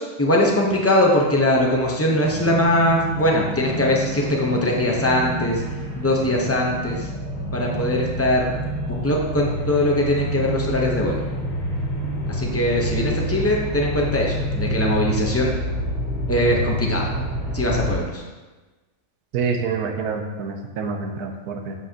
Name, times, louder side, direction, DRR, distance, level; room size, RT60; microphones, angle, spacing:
voice 1, 0.0-5.6 6.0-7.0 7.5-8.5 9.0-11.2 12.3-15.5 16.3-17.1 17.5-18.2, left 1 dB, 15° left, -2 dB, 0.6 m, -21 dB
sound 1, 2.2-17.9, equal, 55° left, 2.2 m, -28 dB
voice 2, 19.3-21.8, right 5 dB, 90° right, 5 dB, 1.2 m, -27 dB
7.6 x 5.5 x 2.8 m, 1.2 s
omnidirectional pair, 1.6 m